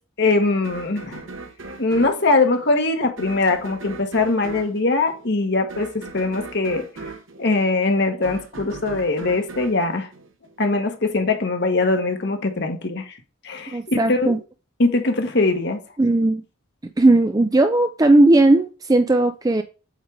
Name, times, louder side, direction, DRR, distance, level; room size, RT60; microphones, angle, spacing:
voice 1, 0.2-1.3 1.8-6.8 7.4-10.1 10.6-13.2 13.4-14.3 14.8-15.8, left 3 dB, 55° left, 1.3 m, -21 dB
sound 1, 0.6-10.9, right 3 dB, 70° right, 1.1 m, -39 dB
voice 2, 13.7-14.4 16.0-16.4 17.0-19.6, right 2 dB, 20° right, 0.4 m, -17 dB
8.1 x 3.3 x 4.8 m
head